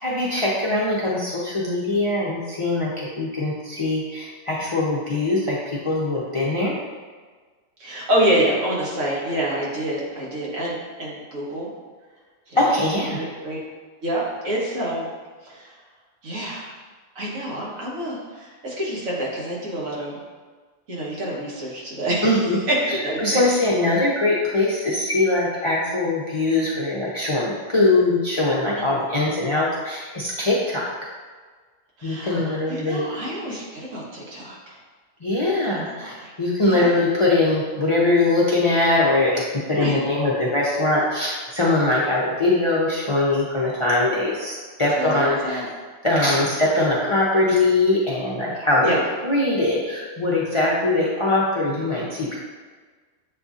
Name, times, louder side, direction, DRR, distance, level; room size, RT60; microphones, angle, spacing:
voice 1, 0.0-6.8 12.6-13.2 22.2-22.6 23.2-30.9 32.0-33.2 35.2-45.7 46.0-48.9 49.2-52.4, left 2 dB, 45° left, -6 dB, 0.4 m, -22 dB
voice 2, 7.8-11.7 12.5-12.6 13.1-13.6 14.0-15.1 15.4-15.7 16.2-16.7 17.1-20.2 20.9-22.4 22.7-23.4 28.9-29.0 32.0-34.8 35.7-36.3 36.6-36.9 39.8-40.0 45.0-45.7 48.8-49.0, right 1 dB, 85° right, -4 dB, 1.5 m, -27 dB
7.4 x 2.7 x 2.4 m, 1.4 s
omnidirectional pair, 1.3 m